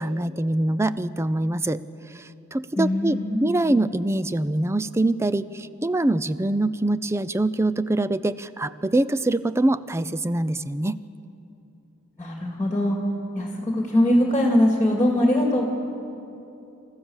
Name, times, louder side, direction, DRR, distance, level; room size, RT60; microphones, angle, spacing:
voice 1, 0.0-1.8 2.1-11.0, right 2 dB, 10° right, 15 dB, 0.4 m, -24 dB
voice 2, 2.8-3.5 12.2-13.0 13.3-15.6, left 1 dB, 10° left, 0 dB, 2.2 m, -21 dB
28.0 x 14.5 x 7.2 m, 2.8 s
head